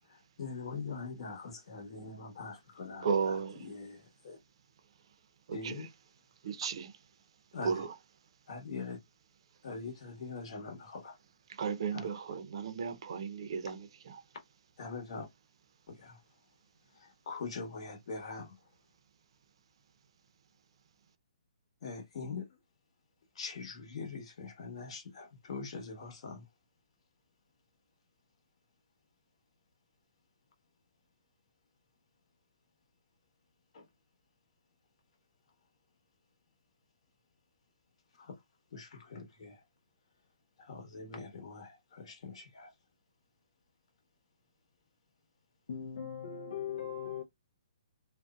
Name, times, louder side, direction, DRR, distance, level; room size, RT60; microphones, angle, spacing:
voice 1, 0.4-3.3 3.6-4.4 5.5-5.9 7.5-7.7 8.5-9.0 9.6-11.1 11.9-12.0 14.8-15.3 15.9-16.2 17.0-18.6 21.8-22.5 23.4-26.4 33.7-33.8 38.2-38.4 38.7-39.5 40.6-42.7, left 4 dB, 50° left, 1.1 m, -43 dB
voice 2, 3.0-3.7 5.5-5.9 6.4-6.9 7.6-8.0 11.5-14.2, right 6 dB, 50° right, 0.5 m, -35 dB
voice 3, 45.7-47.2, left 8 dB, 70° left, 0.6 m, -39 dB
2.6 x 2.1 x 2.3 m
hypercardioid pair, 160°, 4 cm